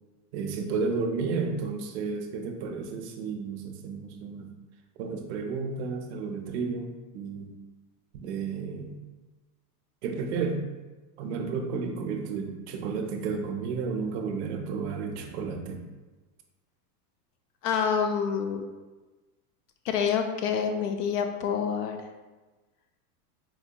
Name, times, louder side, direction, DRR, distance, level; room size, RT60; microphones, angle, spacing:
voice 1, 0.3-4.5 5.0-7.5 8.1-9.0 10.0-10.7 11.2-15.8, right 5 dB, 50° right, 4 dB, 0.5 m, -32 dB
voice 2, 17.6-18.6 19.8-22.0, left 7 dB, 80° left, 5 dB, 0.5 m, -27 dB
4.4 x 2.7 x 2.2 m, 1.2 s
supercardioid pair, 155°, 47 cm